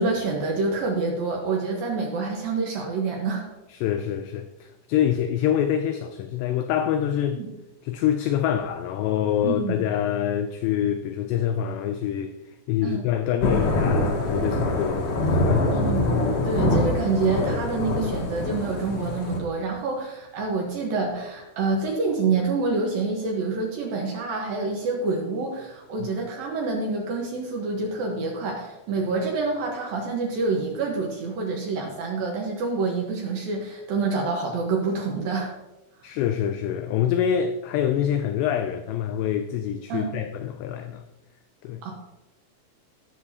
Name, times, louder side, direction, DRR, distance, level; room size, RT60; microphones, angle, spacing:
voice 1, 0.0-3.5 7.3-7.5 9.4-9.7 12.8-13.0 15.7-16.2 16.4-35.5 39.9-40.2 41.8-41.9, right 4 dB, 65° right, 2.4 m, -27 dB
voice 2, 3.7-7.4 7.8-12.3 12.7-15.7 26.0-26.1 36.0-41.0 41.6-41.8, left 10 dB, 90° left, 2.4 m, -25 dB
Thunder / Rain, 13.4-19.4, left 2 dB, 65° left, 2.9 m, -24 dB
18.0 x 6.9 x 2.8 m
omnidirectional pair, 5.5 m